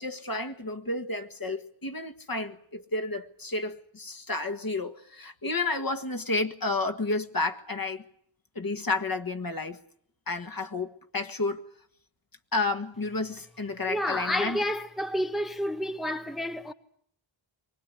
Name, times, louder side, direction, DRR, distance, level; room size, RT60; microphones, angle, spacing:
voice 1, 0.0-8.0 8.6-9.8 10.3-10.9 11.1-11.7 12.5-14.6, left 3 dB, 45° left, 1.7 m, -31 dB
voice 2, 13.9-16.7, left 1 dB, ahead, 0.9 m, -30 dB
23.5 x 19.5 x 9.7 m
wide cardioid pair, 65°, 49 cm